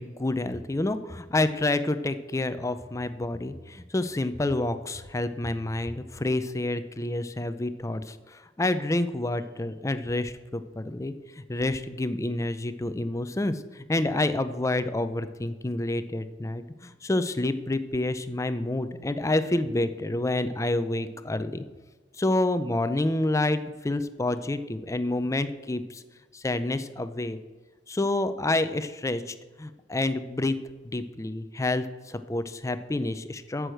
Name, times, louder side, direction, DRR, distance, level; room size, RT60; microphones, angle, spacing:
voice 1, 0.0-21.6 22.2-26.0 26.3-27.4 27.9-30.6 30.8-33.7, left 2 dB, 15° left, 11 dB, 0.5 m, -28 dB
8.0 x 6.3 x 7.7 m, 1.3 s
head